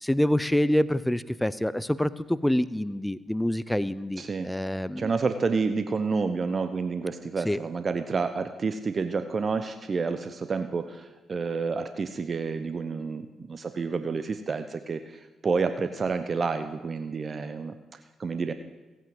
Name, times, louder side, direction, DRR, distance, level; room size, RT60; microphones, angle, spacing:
voice 1, 0.0-5.1 7.4-7.6, left 1 dB, 5° left, 16 dB, 0.7 m, -26 dB
voice 2, 4.2-4.5 5.0-18.5, right 4 dB, 45° right, 10 dB, 0.8 m, -29 dB
15.5 x 9.1 x 7.8 m, 1.2 s
hypercardioid pair, 50°, 0 cm